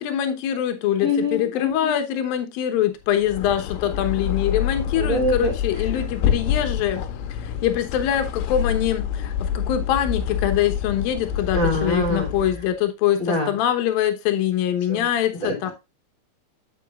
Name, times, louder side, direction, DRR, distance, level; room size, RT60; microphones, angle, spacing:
voice 1, 0.0-7.0 7.3-15.7, left 10 dB, 70° left, 5 dB, 2.4 m, -24 dB
voice 2, 1.0-2.0 4.9-5.5 5.9-6.0 11.5-12.3 13.2-13.5 14.9-15.1 15.4-15.7, left 1 dB, 20° left, -2 dB, 2.4 m, -24 dB
sound 1, 3.1-12.7, left 9 dB, 90° left, 3.2 m, -27 dB
9.1 x 7.9 x 2.4 m, 0.24 s
omnidirectional pair, 5.2 m